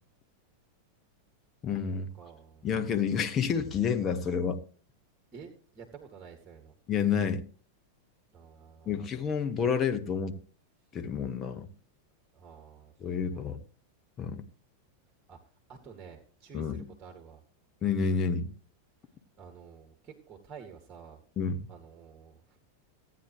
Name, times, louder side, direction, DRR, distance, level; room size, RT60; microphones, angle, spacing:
voice 1, 1.6-2.1 2.6-4.6 6.9-7.5 8.9-10.4 10.9-11.7 13.0-13.6 14.2-14.4 16.5-16.9 17.8-18.5 21.4-21.7, left 6 dB, 25° left, 1.3 m, -29 dB
voice 2, 2.1-2.7 5.3-6.7 8.3-9.0 12.3-13.5 15.3-17.4 19.4-21.2 21.7-22.6, right 6 dB, 25° right, 2.3 m, -50 dB
16.5 x 9.6 x 3.2 m
figure-of-eight pair, 90°, 0 cm